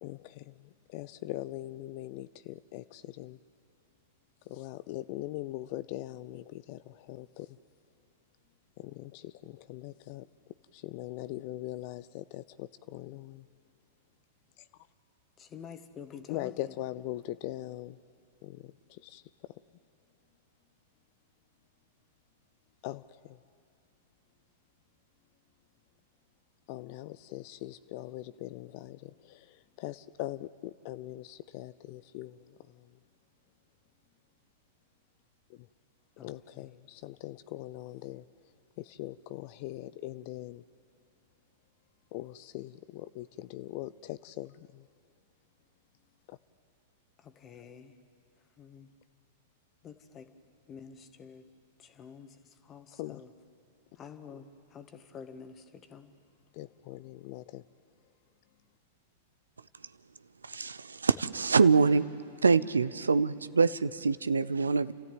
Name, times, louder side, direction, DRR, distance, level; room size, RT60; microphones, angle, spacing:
voice 1, 0.0-3.4 4.5-7.6 8.8-10.2 10.7-13.4 14.6-14.7 16.3-18.0 18.4-19.2 22.8-23.4 26.7-32.9 35.5-35.7 36.2-38.2 38.8-40.6 42.1-44.8 46.3-46.4 52.9-53.2 56.5-57.6, left 16 dB, 50° left, 0.5 m, -41 dB
voice 2, 15.4-16.8 36.2-36.7 47.2-48.0 48.6-48.9 49.8-50.3 50.7-51.4 51.8-53.3 54.0-56.1, left 6 dB, 30° left, 1.7 m, -49 dB
voice 3, 60.5-62.0 62.4-64.9, right 4 dB, 85° right, 0.6 m, -25 dB
30.0 x 13.5 x 9.2 m
hypercardioid pair, 100°, 0 cm